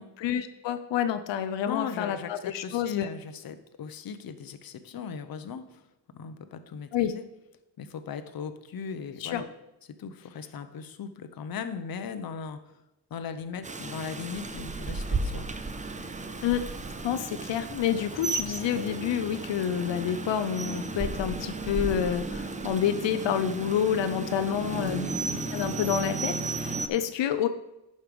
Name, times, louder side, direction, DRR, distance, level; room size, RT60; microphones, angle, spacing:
voice 1, 0.2-3.1 6.9-7.1 9.2-9.4 16.4-16.7 17.0-25.0 25.5-27.5, left 9 dB, 85° left, 10 dB, 0.6 m, -28 dB
voice 2, 1.6-5.9 6.1-7.2 7.8-9.4 10.0-12.8 13.1-15.5 24.8-25.1, left 6 dB, 55° left, 10 dB, 0.8 m, -38 dB
Rain, 13.6-26.9, right 3 dB, 20° right, 0.5 m, -34 dB
11.0 x 5.4 x 5.2 m, 0.95 s
wide cardioid pair, 150°, 43 cm